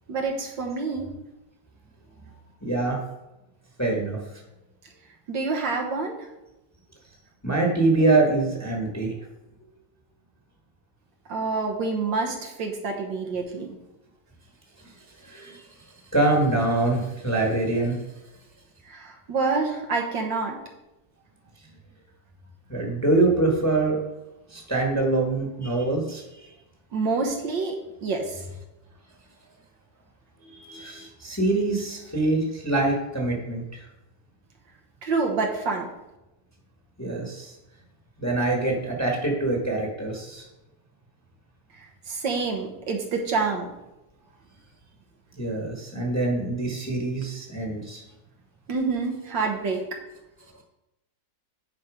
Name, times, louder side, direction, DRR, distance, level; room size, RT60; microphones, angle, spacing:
voice 1, 0.1-1.1 5.3-6.3 11.3-13.8 18.9-20.6 26.9-27.8 28.0-28.4 35.0-35.9 42.1-43.7 48.7-49.8, right 4 dB, 70° right, 1 dB, 1.7 m, -27 dB
voice 2, 2.6-3.0 3.8-4.2 7.4-9.1 15.2-15.6 16.1-18.0 22.7-24.0 24.5-26.5 30.4-33.9 37.0-37.5 38.2-40.4 45.4-48.0, right 2 dB, 10° left, -1 dB, 1.2 m, -24 dB
9.4 x 4.3 x 5.0 m, 0.97 s
omnidirectional pair, 2.1 m